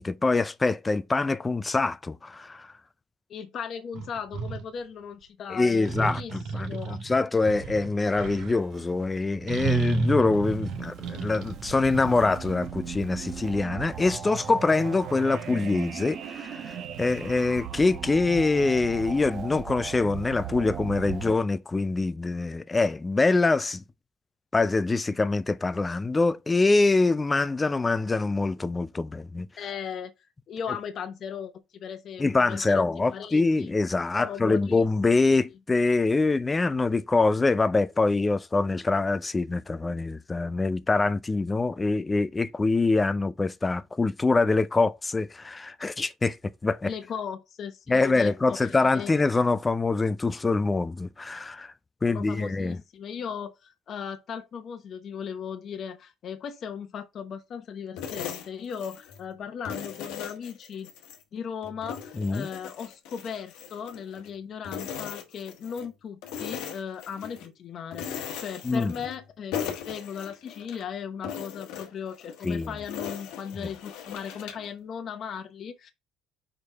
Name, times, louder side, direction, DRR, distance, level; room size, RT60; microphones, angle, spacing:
voice 1, 0.0-2.7 5.5-23.8 24.5-29.5 32.2-46.9 47.9-51.7 52.0-52.8 62.2-62.5 68.6-68.9 72.4-72.7, left 3 dB, 15° left, 0.4 m, -24 dB
voice 2, 3.3-7.0 29.6-30.1 30.5-32.8 33.1-33.7 34.2-34.9 46.9-48.6 48.9-49.1 52.1-60.9 61.3-75.9, left 7 dB, 40° left, 0.9 m, -37 dB
sound 1, 3.9-4.6 5.8-8.6 9.5-12.7, right 3 dB, 70° right, 2.0 m, -31 dB
sound 2, 8.4-21.4, right 8 dB, 45° right, 1.1 m, -38 dB
sound 3, 58.0-59.2 59.7-61.2 61.6-64.3 64.6-65.9 66.2-67.5 67.9-69.2 69.5-70.8 71.2-74.7, left 8 dB, 90° left, 1.3 m, -38 dB
5.1 x 4.6 x 3.9 m
cardioid pair, 145°, 0 cm